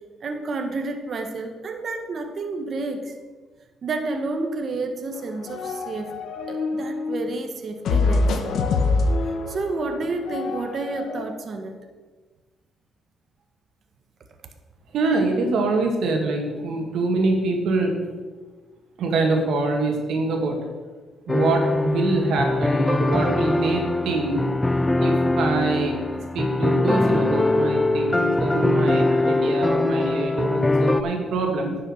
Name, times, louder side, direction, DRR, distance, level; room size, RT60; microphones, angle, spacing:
voice 1, 0.2-3.1 3.8-6.1 6.5-8.6 9.5-11.8, right 3 dB, 50° right, 5 dB, 1.3 m, -30 dB
sound 1, 5.2-7.3 7.9-11.2, left 3 dB, 75° left, 1.1 m, -25 dB
voice 2, 14.9-17.9 19.0-20.6 21.3-24.4 25.0-26.0 26.3-31.8, right 3 dB, 75° right, 2 dB, 2.2 m, -24 dB
sound 2, 21.3-31.0, left 2 dB, 15° left, 0.5 m, -22 dB
10.0 x 6.5 x 6.5 m, 1.4 s
cardioid pair, 90°, 0 cm